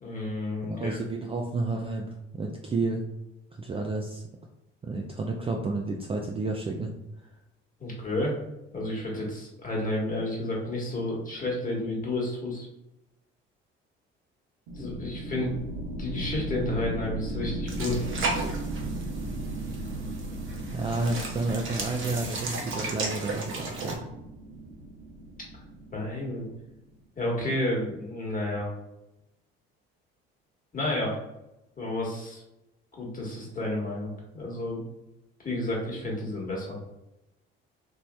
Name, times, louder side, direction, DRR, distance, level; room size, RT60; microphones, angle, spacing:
voice 1, 0.0-1.0 7.8-8.3 8.7-12.7 14.8-15.5 16.0-18.0 25.9-26.4 27.2-28.7 30.7-31.2 31.8-32.4 32.9-34.8 35.4-36.8, left 1 dB, 30° left, -3 dB, 1.3 m, -31 dB
voice 2, 0.6-3.0 3.5-4.2 4.8-6.9 20.7-24.0, right 3 dB, 20° right, 1 dB, 0.4 m, -31 dB
sound 1, 14.7-26.9, right 1 dB, 80° right, 0.7 m, -37 dB
sound 2, 17.7-23.9, right 3 dB, 45° right, 0.8 m, -35 dB
3.0 x 2.7 x 2.2 m, 0.91 s
hypercardioid pair, 60°, 30 cm